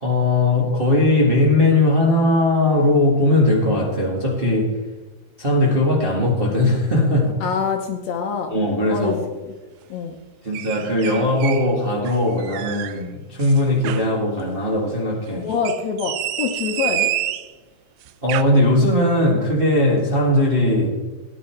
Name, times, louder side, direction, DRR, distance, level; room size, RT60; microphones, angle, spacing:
voice 1, 0.0-4.7 5.4-7.3 8.5-9.2 10.4-15.5 18.2-20.9, left 1 dB, 25° right, -2 dB, 1.4 m, -19 dB
voice 2, 7.4-8.5 8.9-9.5 9.9-10.2 15.4-17.1, left 6 dB, 65° left, 4 dB, 2.0 m, -25 dB
sound 1, 10.5-11.7 12.0-13.0 13.4-14.1 15.5-17.5 18.1-18.4, right 13 dB, 80° right, 1.7 m, -28 dB
17.0 x 10.5 x 4.4 m, 1.2 s
omnidirectional pair, 3.9 m